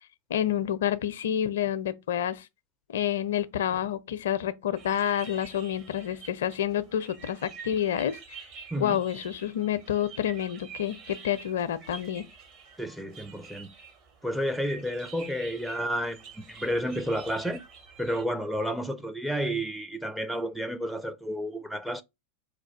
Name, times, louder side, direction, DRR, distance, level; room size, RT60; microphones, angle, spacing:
voice 1, 0.3-2.5 2.9-8.2 8.8-12.3, left 10 dB, 60° left, 0.4 m, -28 dB
sound 1, 4.8-18.2, right 6 dB, 40° right, 1.0 m, -48 dB
voice 2, 12.8-13.7 14.2-17.6 18.0-22.0, equal, ahead, 0.4 m, -31 dB
4.5 x 2.3 x 4.5 m
figure-of-eight pair, 90°, 0 cm